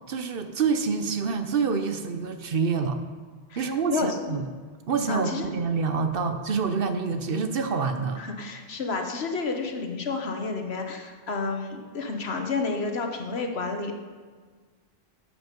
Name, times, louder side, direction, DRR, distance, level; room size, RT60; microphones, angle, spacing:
voice 1, 0.1-3.0 3.6-4.4 4.9-8.2, right 5 dB, 60° right, 8 dB, 1.0 m, -27 dB
voice 2, 3.5-4.4 5.1-5.5 8.2-13.9, left 4 dB, 70° left, 4 dB, 1.4 m, -30 dB
12.0 x 8.1 x 5.2 m, 1.5 s
omnidirectional pair, 1.1 m